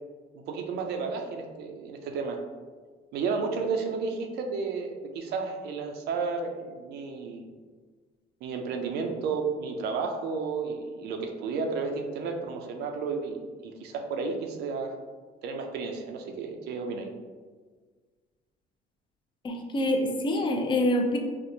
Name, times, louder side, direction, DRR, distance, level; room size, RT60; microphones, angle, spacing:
voice 1, 0.5-2.4 3.1-7.5 8.4-14.9 15.4-17.1, right 4 dB, 75° right, 3 dB, 0.5 m, -32 dB
voice 2, 19.4-21.2, left 1 dB, 30° left, 2 dB, 0.5 m, -26 dB
4.2 x 2.1 x 2.6 m, 1.5 s
cardioid pair, 110°, 17 cm